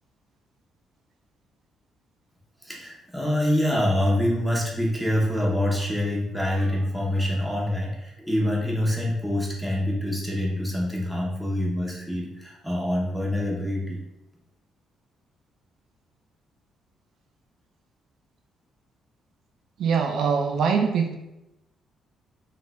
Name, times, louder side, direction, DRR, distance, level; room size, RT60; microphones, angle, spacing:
voice 1, 2.6-14.0, left 1 dB, ahead, -3 dB, 0.9 m, -25 dB
voice 2, 19.8-21.2, right 6 dB, 70° right, 4 dB, 0.4 m, -23 dB
4.0 x 2.5 x 2.3 m, 0.92 s
cardioid pair, 90°, 0 cm